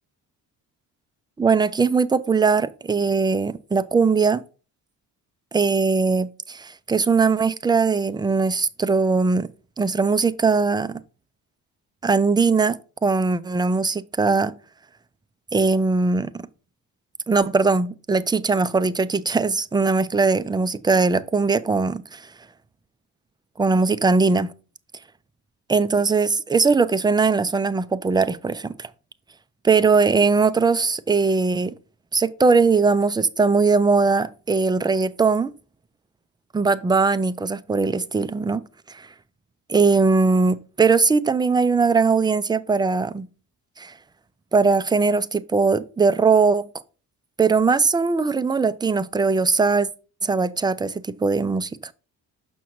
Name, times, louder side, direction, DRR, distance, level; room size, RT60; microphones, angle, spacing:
voice 1, 1.4-4.4 5.5-9.5 9.8-11.0 12.0-14.5 15.5-16.5 17.3-22.3 23.6-24.5 25.7-28.9 29.6-31.7 32.1-35.5 36.5-38.6 38.9-39.1 39.7-43.3 43.8-43.9 44.5-46.7 47.4-49.9 50.2-51.9, right 4 dB, 10° right, 0.4 m, -20 dB
6.2 x 5.7 x 3.0 m
supercardioid pair, 60°, 43 cm